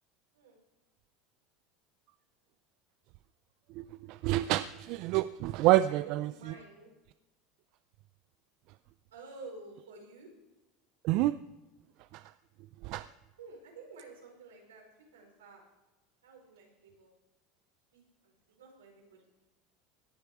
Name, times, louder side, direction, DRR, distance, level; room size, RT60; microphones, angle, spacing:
voice 1, 3.8-6.3 11.0-11.3 12.8-13.1, right 16 dB, 60° right, 15 dB, 0.4 m, -27 dB
voice 2, 6.0-6.9 9.1-10.3 13.4-15.6 16.2-17.1 17.9-19.2, right 3 dB, 90° right, 1 dB, 4.9 m, -51 dB
18.0 x 11.0 x 4.9 m, 1.1 s
hypercardioid pair, 90°, 0 cm